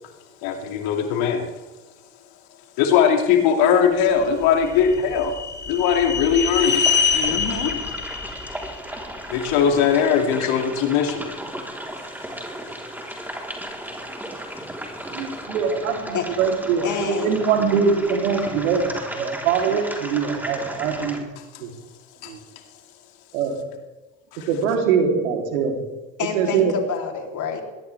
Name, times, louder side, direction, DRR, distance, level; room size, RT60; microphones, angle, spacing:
voice 1, 0.4-1.5 2.8-5.3 5.7-6.8 9.3-11.3 21.4-21.5 22.2-22.3 24.3-24.5, left 7 dB, 65° left, 3 dB, 2.7 m, -20 dB
sound 1, 4.4-9.6, left 5 dB, 25° left, 2.6 m, -25 dB
sound 2, 6.6-21.2, right 1 dB, 5° right, 3.9 m, -35 dB
voice 2, 7.1-7.8 10.4-10.6 16.1-16.3 16.8-17.4 26.2-27.6, left 6 dB, 50° left, 2 dB, 3.6 m, -28 dB
voice 3, 15.1-21.2 21.6-21.7 22.3-22.4 23.3-23.6 24.5-25.8 26.3-26.7, right 6 dB, 80° right, 2 dB, 3.5 m, -22 dB
21.0 x 18.0 x 3.6 m, 1.2 s
hypercardioid pair, 70°, 39 cm